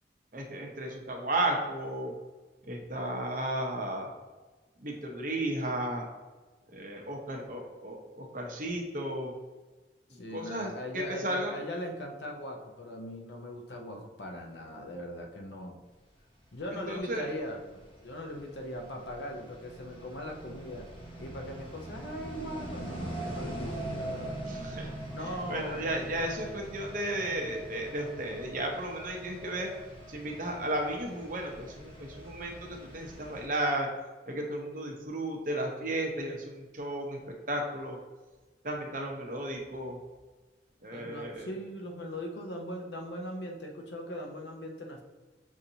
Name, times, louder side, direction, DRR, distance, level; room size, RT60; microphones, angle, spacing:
voice 1, 0.3-2.1 2.6-4.1 4.8-6.1 6.7-9.3 10.3-11.6 16.7-17.3 24.5-24.9 25.2-29.7 30.1-33.9 34.3-38.0 38.6-40.0 40.8-41.5, right 1 dB, 45° right, 1 dB, 0.7 m, -34 dB
voice 2, 10.1-15.8 16.5-20.9 21.2-24.6 25.1-25.9 40.9-45.0, equal, 70° left, 3 dB, 0.7 m, -40 dB
sound 1, 16.8-33.5, right 1 dB, 30° left, 0.8 m, -42 dB
6.4 x 2.6 x 2.8 m, 1.3 s
head